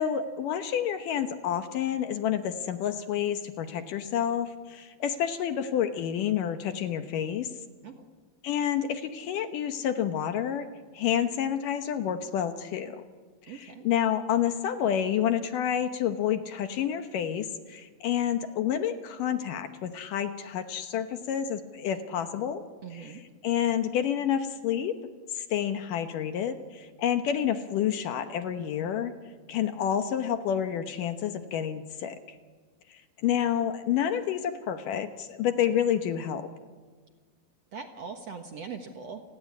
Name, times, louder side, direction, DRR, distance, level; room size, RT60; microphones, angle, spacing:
voice 1, 0.0-7.5 8.4-10.6 10.9-13.0 13.5-22.6 22.9-23.2 23.4-24.9 25.3-29.1 29.5-32.2 33.2-36.5, left 9 dB, 70° left, 8 dB, 2.4 m, -29 dB
voice 2, 13.5-13.8 22.8-23.2 37.7-39.2, right 5 dB, 55° right, 4 dB, 2.0 m, -41 dB
29.5 x 20.5 x 8.4 m, 1.5 s
omnidirectional pair, 4.4 m